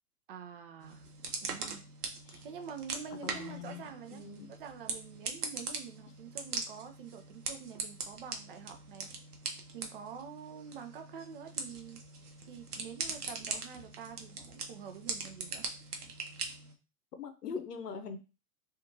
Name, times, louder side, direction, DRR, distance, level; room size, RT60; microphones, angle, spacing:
voice 1, 0.3-1.0 1.4-1.8 2.4-4.2 4.5-9.1 9.7-12.0 12.5-15.7, right 7 dB, 40° right, 7 dB, 0.5 m, -46 dB
sound 1, 0.8-16.7, right 4 dB, 75° right, 0.8 m, -41 dB
voice 2, 3.2-3.8 4.1-4.5 17.2-18.2, left 6 dB, 85° left, 9 dB, 0.7 m, -42 dB
2.8 x 2.5 x 2.6 m, 0.31 s
figure-of-eight pair, 120°, 46 cm